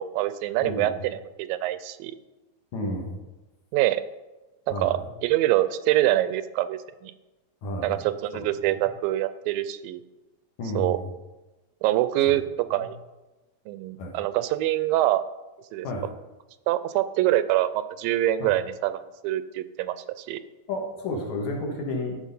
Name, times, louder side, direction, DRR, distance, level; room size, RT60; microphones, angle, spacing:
voice 1, 0.0-2.1 3.7-4.0 4.7-7.1 7.8-10.0 10.8-11.0 11.8-12.4 12.7-13.0 13.7-15.2 15.7-15.9 16.7-20.4, right 14 dB, 80° right, 13 dB, 2.2 m, -25 dB
voice 2, 0.6-1.0 2.7-3.2 4.7-5.1 7.6-8.0 8.3-8.8 10.6-11.1 12.7-12.9 14.0-14.2 15.8-16.1 18.4-18.5 20.7-22.2, left 1 dB, 60° left, 0 dB, 2.5 m, -32 dB
14.0 x 5.2 x 5.4 m, 1.1 s
omnidirectional pair, 4.1 m